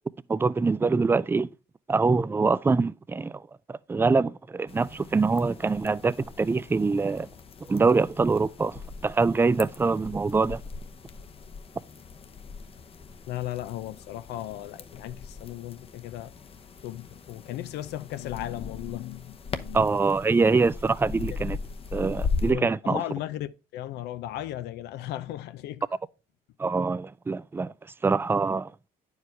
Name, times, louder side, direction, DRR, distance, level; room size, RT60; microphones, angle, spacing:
voice 1, 0.3-1.5 1.9-3.4 3.7-7.3 7.7-10.6 19.7-21.6 21.9-23.0 26.6-27.7 28.0-28.7, right 4 dB, 15° right, 0.4 m, -24 dB
sound 1, 4.7-22.5, left 4 dB, 35° left, 0.8 m, -39 dB
voice 2, 13.3-16.3 16.8-19.8 22.5-25.9, left 13 dB, 80° left, 0.6 m, -36 dB
9.6 x 4.8 x 4.5 m
cardioid pair, 110°, 17 cm